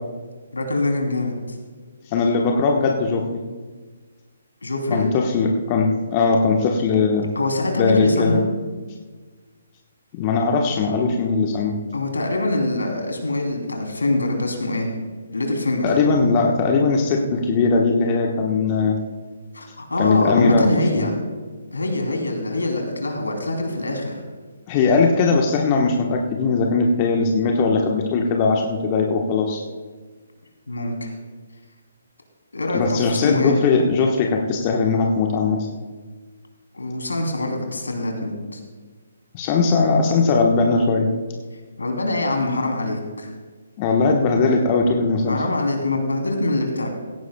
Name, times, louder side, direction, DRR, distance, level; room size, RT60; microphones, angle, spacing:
voice 1, 0.5-1.3 4.6-5.0 7.3-8.4 11.9-14.9 15.3-15.9 19.5-21.2 21.7-24.1 30.7-31.1 32.5-33.6 36.7-38.6 41.8-43.3 45.3-46.9, left 2 dB, 75° left, 2 dB, 3.0 m, -24 dB
voice 2, 2.1-3.4 4.9-7.3 7.8-8.4 10.1-11.8 15.8-19.0 20.0-20.7 20.9-21.1 24.7-29.6 32.7-35.7 39.3-41.1 43.8-45.4, left 4 dB, 30° left, 1 dB, 1.1 m, -19 dB
17.0 x 15.5 x 2.2 m, 1.4 s
figure-of-eight pair, 135°, 0 cm